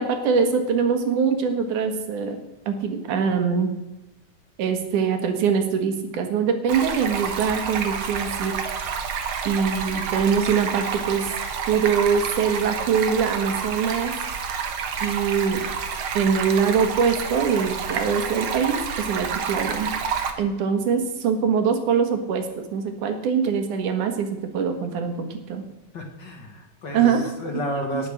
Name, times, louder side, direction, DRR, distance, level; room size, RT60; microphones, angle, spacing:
voice 1, 0.0-2.4 2.7-3.7 4.6-8.5 9.5-11.3 11.7-14.1 15.0-15.6 16.1-19.9 20.4-24.3 24.5-25.6 26.9-27.3 27.9-28.0, right 6 dB, 90° right, 7 dB, 3.1 m, -23 dB
Stream, 6.7-20.3, right 6 dB, 55° right, 1.8 m, -29 dB
voice 2, 25.9-28.1, equal, 40° left, 2 dB, 2.0 m, -31 dB
18.5 x 7.2 x 6.6 m, 1.0 s
omnidirectional pair, 3.4 m